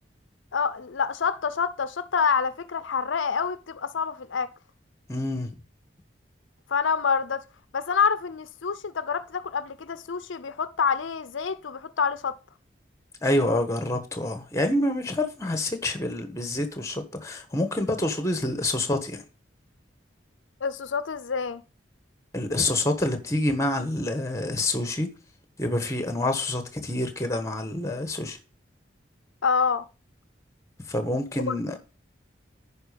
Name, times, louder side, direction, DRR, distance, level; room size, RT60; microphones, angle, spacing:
voice 1, 0.5-4.5 6.7-7.4 7.7-12.3 20.6-21.6 29.4-29.9 31.5-31.6, left 6 dB, 90° left, 0.6 m, -27 dB
voice 2, 5.1-5.5 13.2-19.2 22.3-25.2 25.6-28.4 30.9-31.8, left 1 dB, 15° left, 1.3 m, -27 dB
10.5 x 5.1 x 5.1 m
head